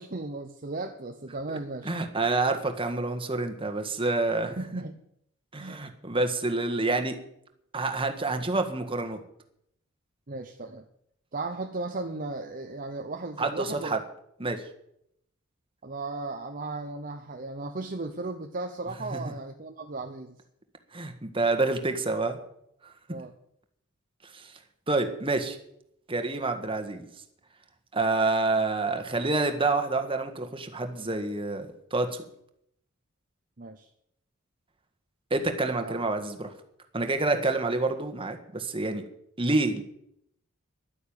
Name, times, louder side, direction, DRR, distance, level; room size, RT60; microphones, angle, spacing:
voice 1, 0.0-1.9 4.4-4.9 5.6-5.8 10.3-10.8 11.3-14.0 15.8-20.4 23.1-23.3 33.6-33.9 35.7-36.0 37.3-37.4, right 3 dB, 45° right, 4 dB, 0.9 m, -36 dB
voice 2, 1.8-4.6 5.5-7.1 7.7-9.2 13.4-14.0 14.4-14.6 19.1-19.2 20.9-22.4 24.3-24.6 24.9-25.6 26.1-27.0 27.9-32.2 35.3-36.5 36.9-39.0 39.4-39.8, right 3 dB, 25° right, 6 dB, 1.7 m, -28 dB
11.5 x 9.7 x 8.9 m, 0.74 s
head